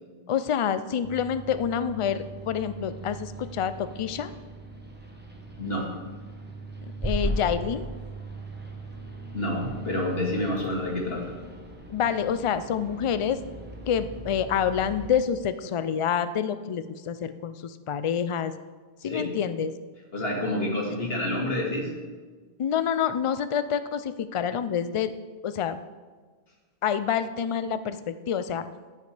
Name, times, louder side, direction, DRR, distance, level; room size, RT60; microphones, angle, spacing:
voice 1, 0.3-4.3 6.8-7.9 11.9-13.4 13.9-18.5 19.0-19.7 20.9-21.0 22.6-25.1 25.4-25.8 26.8-28.6, left 8 dB, 55° left, 12 dB, 0.3 m, -27 dB
sound 1, 1.0-15.1, right 1 dB, 10° right, 0.9 m, -38 dB
voice 2, 5.6-5.9 9.3-11.3 19.0-19.3 20.1-21.9, left 1 dB, 70° left, -2 dB, 2.1 m, -28 dB
14.5 x 6.6 x 3.3 m, 1.4 s
omnidirectional pair, 1.0 m